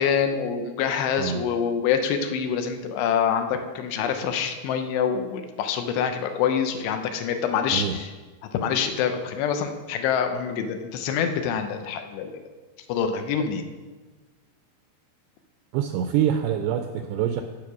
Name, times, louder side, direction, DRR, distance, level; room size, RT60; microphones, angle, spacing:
voice 1, 0.0-8.1 8.5-12.4 12.9-13.6, left 7 dB, 80° left, 7 dB, 2.9 m, -26 dB
voice 2, 15.7-17.4, right 9 dB, 85° right, 7 dB, 2.4 m, -25 dB
14.5 x 5.1 x 6.1 m, 1.3 s
omnidirectional pair, 5.1 m